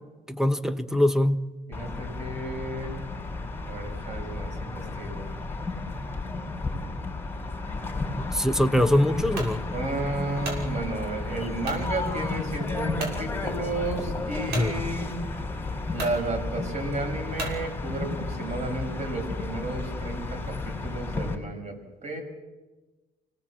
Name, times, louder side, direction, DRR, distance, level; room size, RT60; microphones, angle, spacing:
voice 1, 0.3-1.5 8.2-9.6 14.5-14.7, left 1 dB, 5° right, 1.1 m, -23 dB
sound 1, 1.7-21.3, left 3 dB, 15° left, 4.3 m, -33 dB
voice 2, 1.7-2.9 3.7-5.3 9.7-15.2 15.9-21.8 22.0-22.2, right 2 dB, 45° right, 6.9 m, -33 dB
sound 2, 9.3-9.6 10.1-10.7 11.6-11.9 12.4-12.5 13.0-13.2 14.5-14.7 15.5-15.6 15.9-16.2 17.4-17.6, right 2 dB, 80° right, 6.3 m, -34 dB
27.5 x 18.0 x 7.6 m
cardioid pair, 110°, 17 cm